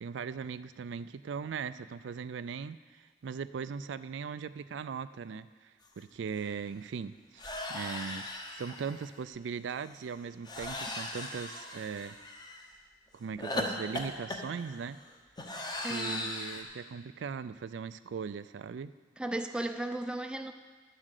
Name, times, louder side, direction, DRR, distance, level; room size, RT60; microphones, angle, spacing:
voice 1, 0.0-7.1 7.7-8.3 8.6-12.2 13.1-15.0 15.8-18.9, right 6 dB, 80° right, 13 dB, 0.4 m, -39 dB
sound 1, 6.0-6.1 6.3-6.5 7.4-9.1 10.4-12.6 13.4-16.6, left 1 dB, 25° left, 1.0 m, -38 dB
voice 2, 15.8-16.3 19.2-20.5, right 1 dB, 5° right, 6 dB, 0.4 m, -35 dB
11.0 x 7.4 x 6.6 m, 1.4 s
head